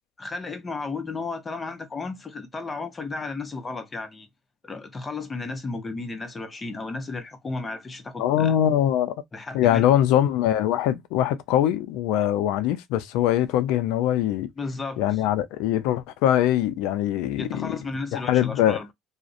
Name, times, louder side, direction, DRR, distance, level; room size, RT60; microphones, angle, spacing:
voice 1, 0.2-4.3 4.6-8.6 9.3-9.9 14.6-15.2 17.4-18.9, left 3 dB, 25° left, 0.7 m, -33 dB
voice 2, 8.2-9.1 9.5-14.5 15.0-17.7 18.1-18.8, left 11 dB, 80° left, 0.4 m, -22 dB
2.5 x 2.0 x 2.4 m
supercardioid pair, 95°, 0 cm